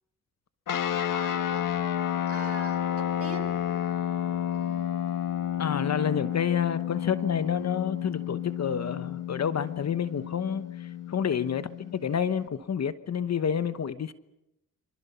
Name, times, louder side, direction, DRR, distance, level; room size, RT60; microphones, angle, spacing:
sound 1, 0.7-12.5, left 10 dB, 70° left, 1.5 m, -31 dB
voice 1, 1.1-1.7 2.2-3.6 4.5-5.1, right 4 dB, 45° right, 4.8 m, -42 dB
voice 2, 5.6-14.1, left 7 dB, 50° left, 1.1 m, -29 dB
27.5 x 25.5 x 5.7 m
cardioid pair, 70°, 34 cm